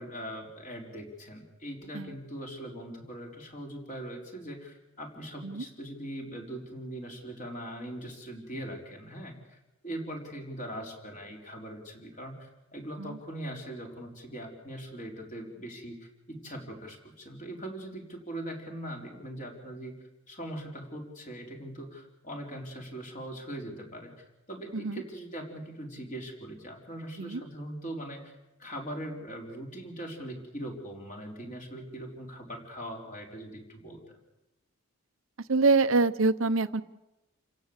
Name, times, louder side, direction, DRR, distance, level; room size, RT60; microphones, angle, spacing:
voice 1, 0.0-20.0 20.3-24.1 24.5-28.3 28.6-34.0, right 1 dB, 35° left, 0 dB, 4.5 m, -41 dB
voice 2, 35.5-36.8, right 3 dB, 70° right, 12 dB, 0.9 m, -25 dB
29.0 x 16.5 x 8.2 m, 0.99 s
head